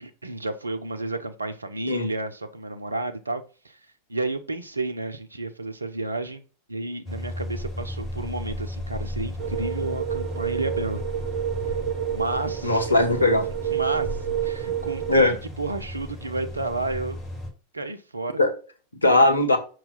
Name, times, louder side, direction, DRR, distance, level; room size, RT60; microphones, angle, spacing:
voice 1, 0.0-3.8 4.1-6.4 6.7-11.0 12.1-12.9 13.7-14.1 14.4-17.2 17.7-18.4, right 2 dB, 80° right, 0.7 m, -31 dB
sound 1, 7.0-17.5, left 1 dB, 20° left, 3.7 m, -35 dB
sound 2, 9.4-15.2, right 11 dB, 45° right, 1.0 m, -29 dB
voice 2, 12.6-13.5 15.1-15.3 18.4-18.5 19.0-19.6, left 2 dB, 80° left, 1.1 m, -19 dB
5.9 x 3.1 x 5.4 m
figure-of-eight pair, 90°, 0 cm